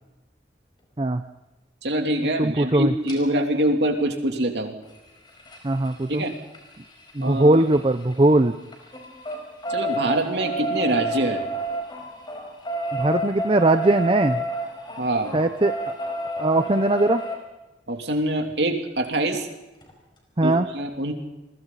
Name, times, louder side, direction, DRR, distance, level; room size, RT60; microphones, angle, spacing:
voice 1, 1.8-4.7 6.1-6.3 7.2-7.6 9.7-11.4 15.0-15.3 17.9-19.5 20.4-21.1, right 1 dB, 65° right, 3 dB, 3.1 m, -24 dB
voice 2, 2.4-2.9 5.6-6.2 7.1-8.5 12.9-14.4 15.3-15.8 16.4-17.2 20.4-20.7, right 2 dB, 30° right, 8 dB, 0.6 m, -20 dB
sound 1, 3.1-3.2 4.8-8.3 8.6-17.4 19.0-19.1 19.4-19.5 19.8-19.9, right 1 dB, 25° left, 5.1 m, -31 dB
29.5 x 22.0 x 4.1 m, 1.0 s
head